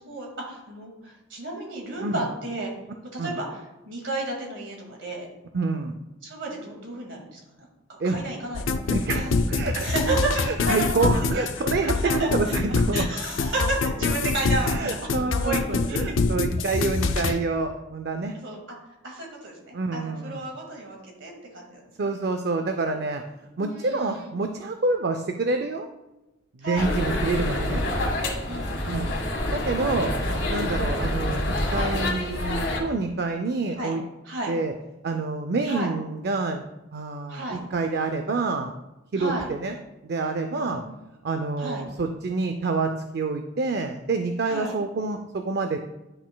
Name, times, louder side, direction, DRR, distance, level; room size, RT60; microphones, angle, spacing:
voice 1, 0.0-2.7 3.1-3.6 3.9-5.3 6.2-8.7 9.2-9.4 9.8-11.5 12.0-12.3 12.9-16.0 17.1-17.2 18.3-18.6 19.0-22.1 23.6-24.2 26.6-26.9 28.5-28.9 29.9-30.4 33.8-33.9 34.3-34.5 35.7-35.9 37.3-37.6 39.2-39.5 40.5-40.9 41.6-41.8 44.5-44.7, right 2 dB, 70° right, -1 dB, 2.1 m, -32 dB
voice 2, 5.5-5.9 8.0-8.2 8.9-9.9 10.4-13.1 14.6-18.4 19.7-20.5 22.0-23.2 23.6-25.9 26.5-27.8 28.8-29.2 29.5-30.1 30.5-34.0 34.5-34.7 35.0-36.7 36.9-38.7 39.1-39.8 40.0-40.8 41.2-45.8, right 3 dB, 55° right, 6 dB, 0.4 m, -27 dB
sound 1, 8.5-17.3, left 4 dB, 85° left, 0.5 m, -25 dB
sound 2, 26.8-32.8, left 1 dB, 70° left, 1.7 m, -27 dB
10.0 x 6.1 x 2.2 m, 0.99 s
head